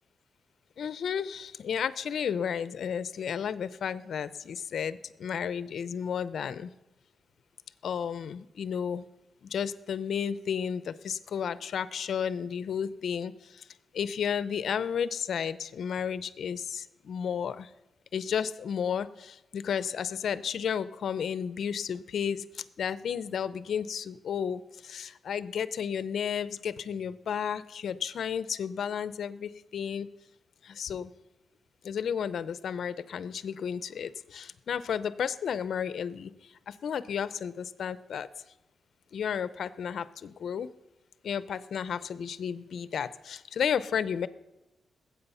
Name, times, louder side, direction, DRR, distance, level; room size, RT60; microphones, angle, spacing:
voice 1, 0.8-6.7 7.8-9.0 9.5-13.3 13.9-17.7 18.1-22.4 22.8-30.1 30.6-31.1 31.8-36.3 36.7-38.3 39.1-40.7 41.2-44.3, left 7 dB, 70° left, 16 dB, 0.6 m, -32 dB
20.0 x 8.5 x 5.6 m, 0.95 s
cardioid pair, 110°, 0 cm